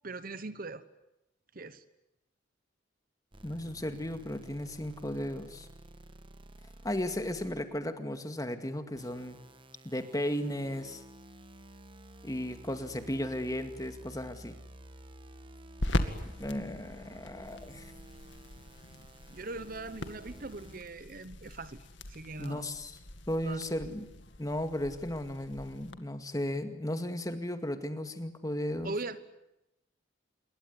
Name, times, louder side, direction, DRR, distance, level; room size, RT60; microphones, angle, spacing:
voice 1, 0.0-0.8 1.5-1.8 19.3-21.8 22.1-22.7 23.4-23.6 28.8-29.2, right 3 dB, 45° right, 14 dB, 1.1 m, -40 dB
sound 1, 3.3-7.8 8.9-20.8, right 1 dB, 25° right, 1.3 m, -52 dB
voice 2, 3.4-5.7 6.8-9.4 9.8-11.0 12.2-14.6 16.4-17.9 22.4-23.0 23.3-24.1 24.4-28.9, left 1 dB, 20° left, 8 dB, 2.1 m, -35 dB
sound 2, 13.8-25.9, left 1 dB, 65° left, 2.2 m, -41 dB
27.5 x 22.5 x 9.7 m, 0.91 s
head